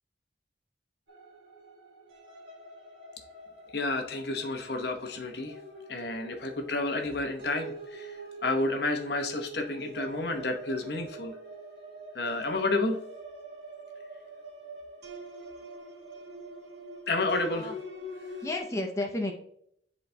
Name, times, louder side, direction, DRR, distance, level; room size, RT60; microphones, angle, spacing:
sound 1, 1.1-18.6, right 1 dB, 80° right, 1.6 m, -45 dB
voice 1, 3.7-5.5 5.9-8.2 8.4-11.4 12.1-13.0 17.1-17.7, left 2 dB, 65° left, 4 dB, 0.9 m, -30 dB
voice 2, 18.4-19.3, left 1 dB, 15° left, 1 dB, 0.5 m, -32 dB
10.5 x 4.1 x 2.2 m, 0.69 s
head